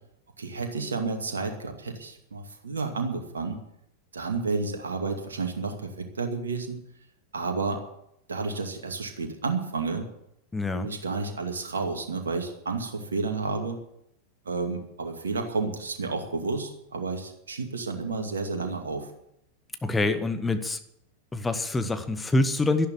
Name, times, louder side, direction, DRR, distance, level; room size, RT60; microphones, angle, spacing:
voice 1, 0.4-3.6 4.1-6.8 7.3-7.8 8.3-10.1 10.7-13.8 14.5-19.1, right 4 dB, 70° right, 4 dB, 2.4 m, -31 dB
voice 2, 10.5-10.9 19.8-20.8 21.3-22.9, left 2 dB, 10° left, 8 dB, 1.5 m, -25 dB
12.0 x 11.0 x 8.2 m, 0.79 s
figure-of-eight pair, 90°, 0 cm